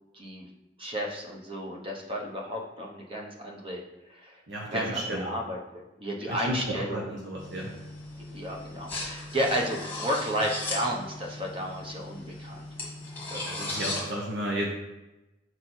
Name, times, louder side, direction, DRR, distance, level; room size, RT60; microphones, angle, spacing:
voice 1, 0.1-0.5 0.8-3.8 4.1-4.4 4.7-7.1 8.3-12.6 13.3-13.5, equal, 30° right, 0 dB, 1.0 m, -32 dB
voice 2, 4.5-5.3 6.2-7.7 13.4-14.7, right 1 dB, 65° right, -2 dB, 1.1 m, -33 dB
sound 1, 7.4-14.0, left 2 dB, 10° left, 1.5 m, -37 dB
6.4 x 4.5 x 4.4 m, 1.0 s
head